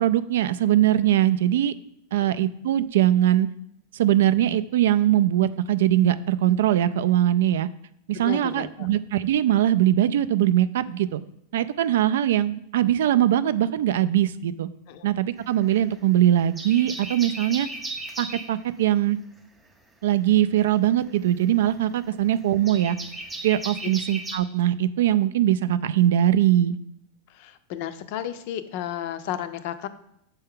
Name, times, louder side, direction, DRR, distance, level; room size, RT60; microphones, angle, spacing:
voice 1, 0.0-1.7 2.1-3.5 3.9-7.7 8.1-11.2 11.5-14.7 15.0-17.7 18.2-19.2 20.0-23.0 23.4-26.8, right 12 dB, 75° right, 14 dB, 0.3 m, -21 dB
voice 2, 8.1-8.9 14.9-15.1 27.3-29.9, left 10 dB, 45° left, 12 dB, 0.4 m, -33 dB
sound 1, 15.4-16.1 16.4-18.6 20.2-24.4, right 2 dB, 10° right, 0.4 m, -36 dB
6.7 x 4.5 x 3.7 m, 0.75 s
supercardioid pair, 175°, 0 cm